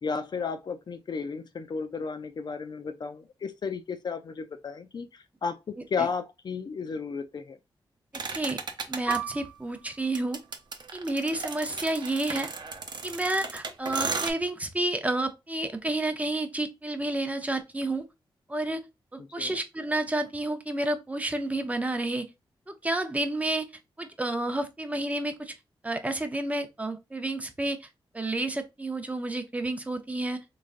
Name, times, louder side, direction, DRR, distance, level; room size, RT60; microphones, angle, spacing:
voice 1, 0.0-7.6 19.4-19.5, left 5 dB, 50° left, 0.4 m, -33 dB
sound 1, 8.1-9.2 10.1-14.3, right 4 dB, 50° right, 0.6 m, -35 dB
voice 2, 8.3-8.6 8.9-10.4 10.9-12.5 13.0-18.0 18.5-18.8 19.1-22.3 22.7-23.7 24.0-25.5 25.8-27.9 28.1-30.4, right 2 dB, 15° right, 0.6 m, -30 dB
Piano, 9.1-14.1 14.4-14.6 15.4-15.7, right 8 dB, 5° left, 1.0 m, -40 dB
3.7 x 3.2 x 2.5 m
wide cardioid pair, 100°, 9 cm